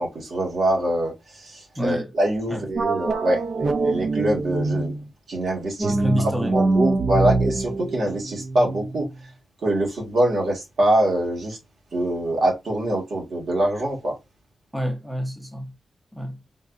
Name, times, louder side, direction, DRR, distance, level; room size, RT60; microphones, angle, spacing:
voice 1, 0.0-4.9 5.3-6.0 6.5-9.1 9.6-11.6 11.9-14.2, right 1 dB, 75° right, 1.6 m, -24 dB
voice 2, 1.8-2.1 2.5-2.7 5.8-6.6 14.7-15.8 16.1-16.4, equal, 5° right, 0.6 m, -28 dB
sound 1, 2.7-5.0 5.8-9.1, right 3 dB, 55° right, 0.4 m, -24 dB
3.8 x 2.5 x 2.4 m
wide cardioid pair, 125°, 0 cm